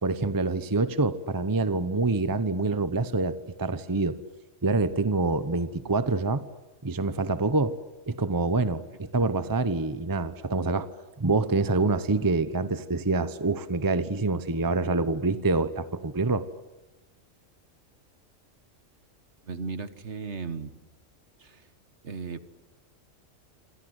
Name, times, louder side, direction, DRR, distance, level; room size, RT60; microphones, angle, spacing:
voice 1, 0.0-4.2 4.6-6.4 6.8-7.8 8.1-10.9 11.2-16.4, right 3 dB, 20° right, 12 dB, 0.8 m, -26 dB
voice 2, 19.4-20.7 21.4-21.7 22.0-22.4, right 4 dB, 60° right, 12 dB, 1.6 m, -36 dB
27.0 x 27.0 x 8.0 m, 1.1 s
omnidirectional pair, 1.4 m